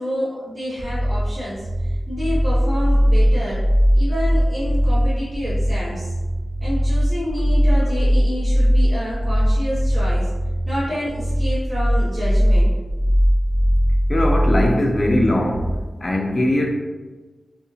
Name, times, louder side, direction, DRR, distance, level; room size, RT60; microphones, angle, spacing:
voice 1, 0.0-3.6 3.9-6.1 6.6-10.3 10.6-12.7, equal, 30° right, -12 dB, 1.4 m, -28 dB
sound 1, 0.8-15.8, equal, 50° right, 0.4 m, -19 dB
voice 2, 14.1-15.7 16.0-16.7, left 1 dB, 35° left, 1 dB, 0.4 m, -20 dB
2.8 x 2.7 x 2.7 m, 1.2 s
wide cardioid pair, 80°, 0 cm